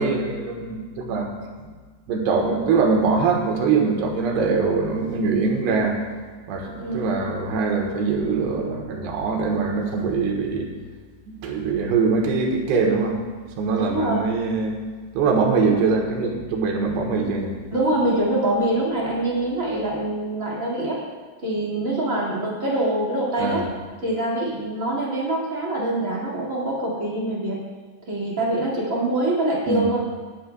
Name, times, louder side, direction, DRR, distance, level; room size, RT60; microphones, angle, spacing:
voice 1, 0.0-1.3 1.6-1.7 2.1-6.0 6.5-10.7 11.3-13.2 13.6-14.8 15.1-17.5 23.4-23.6 29.7-29.9, right 4 dB, 80° right, 0 dB, 3.4 m, -23 dB
voice 2, 6.8-7.1 13.7-14.3 17.7-21.0 21.4-23.7 24.0-27.6 28.1-30.0, right 1 dB, 35° right, -5 dB, 1.4 m, -24 dB
19.0 x 9.5 x 2.3 m, 1.5 s
omnidirectional pair, 4.8 m